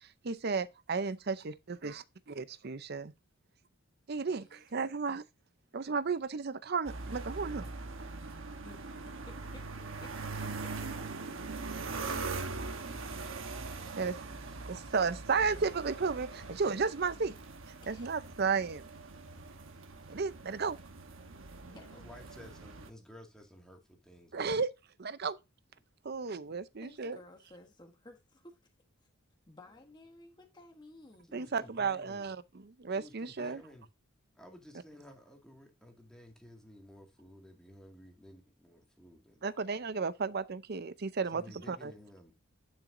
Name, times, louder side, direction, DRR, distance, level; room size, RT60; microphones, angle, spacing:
voice 1, 0.0-1.5 1.8-1.9 2.4-3.1 4.1-5.2 5.7-7.7 14.0-14.1 14.7-17.4 17.9-18.8 20.1-20.8 24.3-24.7 25.0-25.4 26.0-27.2 31.3-33.6 39.4-41.9, right 5 dB, 50° right, 0.6 m, -33 dB
voice 2, 4.3-4.6 8.6-9.7 10.0-10.2 10.4-10.9 17.8-18.1 21.6-22.1 26.8-28.6 29.5-31.4 41.4-41.5, left 2 dB, 20° left, 1.2 m, -55 dB
sound 1, 6.9-22.9, right 3 dB, 65° right, 1.1 m, -42 dB
voice 3, 13.7-15.2 22.0-24.6 31.3-32.3 32.9-33.9 34.3-39.5 41.2-42.3, left 1 dB, 5° left, 2.1 m, -54 dB
11.0 x 6.0 x 2.6 m
head